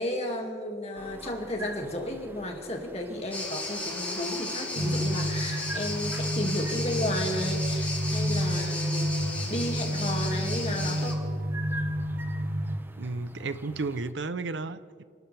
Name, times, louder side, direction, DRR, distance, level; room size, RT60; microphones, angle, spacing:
voice 1, 0.0-11.2, left 1 dB, 35° left, 2 dB, 2.2 m, -33 dB
sound 1, 1.0-14.1, right 1 dB, 10° right, 0.7 m, -46 dB
sound 2, 3.3-11.1, left 2 dB, 10° left, 2.9 m, -35 dB
sound 3, 4.8-12.8, equal, 70° right, 1.6 m, -30 dB
voice 2, 13.0-15.0, right 3 dB, 85° right, 14 dB, 0.7 m, -33 dB
28.5 x 13.0 x 3.4 m, 2.2 s
head